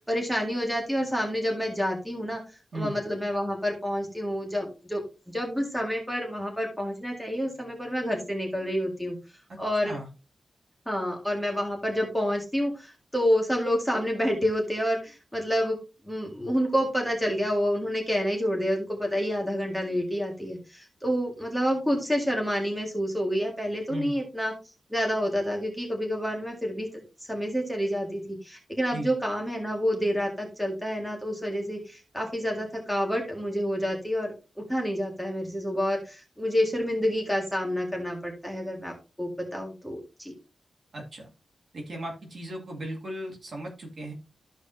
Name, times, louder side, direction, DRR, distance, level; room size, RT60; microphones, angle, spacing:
voice 1, 0.0-2.4 2.7-5.0 5.3-9.2 9.6-9.9 10.9-15.8 16.0-24.5 24.9-34.3 34.7-40.3, equal, ahead, 0 dB, 1.8 m, -28 dB
voice 2, 40.9-41.3 41.7-44.1, right 1 dB, 45° right, 0 dB, 2.4 m, -36 dB
14.0 x 4.8 x 2.7 m, 0.30 s
wide cardioid pair, 170°, 0 cm